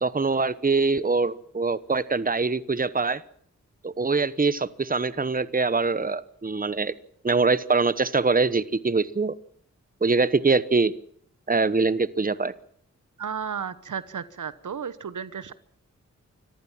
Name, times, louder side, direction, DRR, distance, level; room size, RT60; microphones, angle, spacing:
voice 1, 0.0-3.2 3.8-6.9 7.2-9.3 10.0-10.9 11.5-12.5, right 4 dB, 30° right, 17 dB, 1.1 m, -23 dB
voice 2, 13.2-15.5, right 7 dB, 80° right, 15 dB, 1.1 m, -33 dB
25.0 x 15.0 x 7.3 m, 0.65 s
cardioid pair, 45°, 30 cm